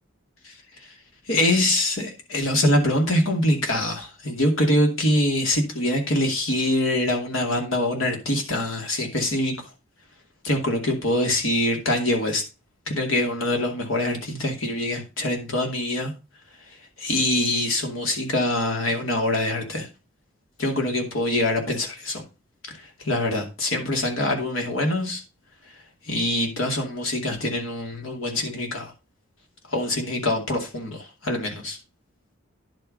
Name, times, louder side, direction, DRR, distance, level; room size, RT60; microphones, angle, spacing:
voice 1, 1.3-9.6 10.4-12.4 12.9-16.1 17.0-19.9 20.6-22.2 23.0-25.2 26.1-28.9 29.7-31.8, left 1 dB, 85° left, 2.5 m, -24 dB
10.5 x 4.6 x 5.2 m
head